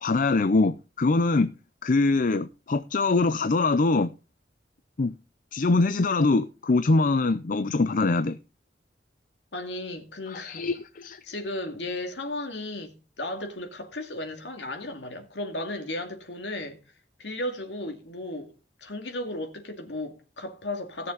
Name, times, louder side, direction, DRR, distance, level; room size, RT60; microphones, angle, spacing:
voice 1, 0.0-1.5 1.8-4.1 5.0-5.1 5.5-8.4 10.3-11.2, left 3 dB, 50° left, 0.6 m, -23 dB
voice 2, 9.5-10.7 11.2-16.8 17.2-18.5 18.8-21.1, left 1 dB, 80° left, 2.3 m, -35 dB
17.0 x 6.8 x 3.9 m
head